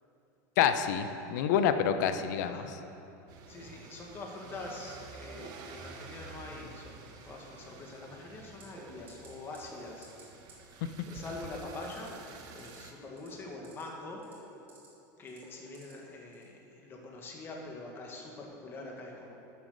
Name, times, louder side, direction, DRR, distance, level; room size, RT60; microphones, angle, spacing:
voice 1, 0.6-2.6, left 8 dB, 75° left, 9 dB, 0.8 m, -27 dB
sound 1, 3.3-12.9, right 4 dB, 40° right, 1.2 m, -49 dB
voice 2, 3.5-10.5 11.0-14.2 15.2-19.4, left 2 dB, 25° left, -1 dB, 1.7 m, -44 dB
sound 2, 8.6-8.8 9.1-9.3 9.5-9.8 10.0-10.2 10.5-10.6 11.8-12.1 12.5-12.8 13.1-13.8 14.2-14.9 15.3-15.9 16.3-16.5, right 4 dB, 20° right, 3.0 m, -54 dB
12.5 x 7.6 x 6.7 m, 2.8 s
supercardioid pair, 155°, 10 cm